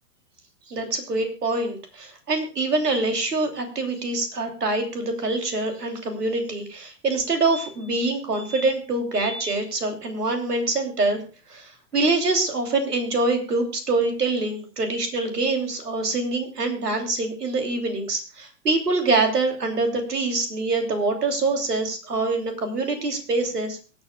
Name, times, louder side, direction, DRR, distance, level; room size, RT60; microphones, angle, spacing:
voice 1, 0.7-11.2 11.5-23.8, right 3 dB, 75° right, 5 dB, 3.1 m, -25 dB
sound 1, 7.2-7.3 7.5-8.0 8.3-8.7 9.1-9.6 12.0-12.1 12.2-12.3, equal, 5° left, 1.5 m, -37 dB
24.0 x 8.8 x 2.3 m, 0.36 s
figure-of-eight pair, 110°, 47 cm